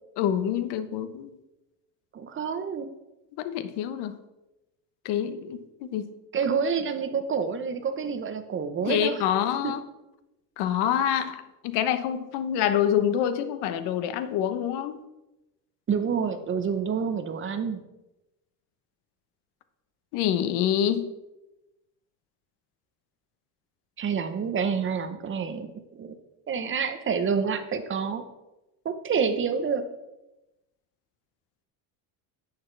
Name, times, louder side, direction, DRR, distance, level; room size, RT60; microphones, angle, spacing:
voice 1, 0.2-1.4 3.4-4.1 5.0-6.1 8.9-9.8 10.6-15.0 20.1-21.1, left 10 dB, 70° left, 11 dB, 1.0 m, -26 dB
voice 2, 2.1-2.9 6.3-9.2 9.6-9.7 15.9-17.8 24.0-25.7 26.0-26.2 26.5-28.2 28.8-29.8, right 6 dB, 30° right, 9 dB, 0.9 m, -28 dB
11.0 x 8.7 x 3.3 m, 0.98 s
cardioid pair, 135°, 42 cm